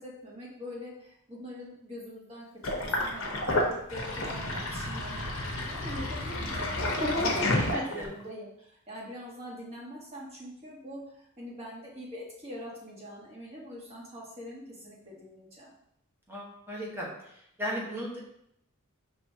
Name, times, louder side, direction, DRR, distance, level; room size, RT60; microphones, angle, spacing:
voice 1, 0.0-2.4 2.8-15.7, equal, 30° right, -4 dB, 1.3 m, -43 dB
Sink (filling or washing), 2.6-8.2, left 1 dB, 70° left, 0.9 m, -30 dB
voice 2, 7.5-8.1 16.3-17.1 17.6-18.2, equal, 10° right, -4 dB, 1.1 m, -35 dB
5.3 x 3.2 x 2.8 m, 0.74 s
head